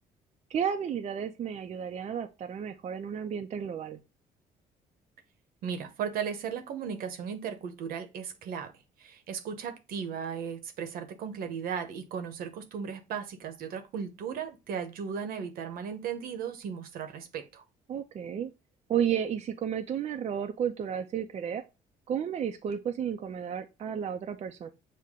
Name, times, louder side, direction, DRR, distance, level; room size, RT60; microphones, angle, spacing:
voice 1, 0.5-4.0 17.9-18.5 18.9-21.6 22.1-24.7, right 8 dB, 45° right, 0.5 m, -32 dB
voice 2, 5.6-8.7 9.0-17.6, right 7 dB, 75° right, 0.9 m, -36 dB
6.6 x 2.2 x 3.6 m
cardioid pair, 85°, 15 cm